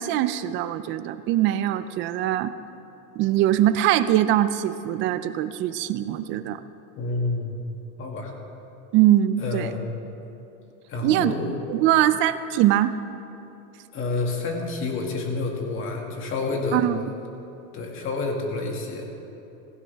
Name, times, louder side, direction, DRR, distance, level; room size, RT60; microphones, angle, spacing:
voice 1, 0.0-2.5 3.2-6.6 8.9-9.7 11.0-11.3 11.7-12.9 16.7-17.0, right 13 dB, 30° right, 13 dB, 0.4 m, -22 dB
voice 2, 7.0-7.5 8.0-8.3 9.4-9.9 10.9-11.5 13.9-16.9 17.7-19.1, left 3 dB, 30° left, 1 dB, 2.0 m, -28 dB
17.5 x 16.0 x 3.5 m, 3.0 s
supercardioid pair, 155°, 39 cm